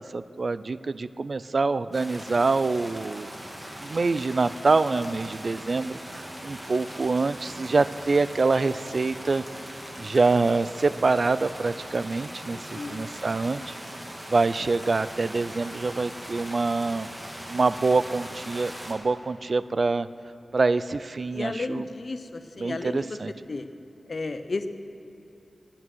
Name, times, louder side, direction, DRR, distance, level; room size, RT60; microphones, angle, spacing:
voice 1, 0.1-3.3 3.8-9.4 10.0-13.7 14.3-17.1 17.5-20.1 20.5-21.8 22.6-23.3, right 3 dB, 55° right, 15 dB, 0.4 m, -25 dB
sound 1, 1.9-18.9, equal, 20° right, 2.2 m, -40 dB
voice 2, 12.5-13.1 21.3-23.2 23.5-23.7 24.1-24.7, left 3 dB, 55° left, 10 dB, 0.8 m, -33 dB
18.5 x 8.8 x 6.2 m, 2.9 s
wide cardioid pair, 65°, 0 cm